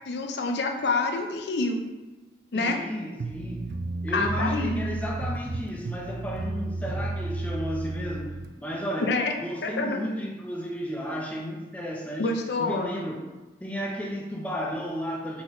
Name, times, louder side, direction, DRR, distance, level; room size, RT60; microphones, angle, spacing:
voice 1, 0.1-1.8 2.5-2.8 4.1-4.9 9.0-9.3 9.6-10.0 12.2-12.9, left 3 dB, 70° left, 3 dB, 0.5 m, -27 dB
voice 2, 2.5-3.7 4.0-9.1 9.4-13.2 13.6-15.4, equal, 10° left, -1 dB, 0.5 m, -33 dB
sound 1, 3.2-8.5, right 2 dB, 55° right, 0.3 m, -32 dB
4.0 x 2.9 x 3.7 m, 1.2 s
head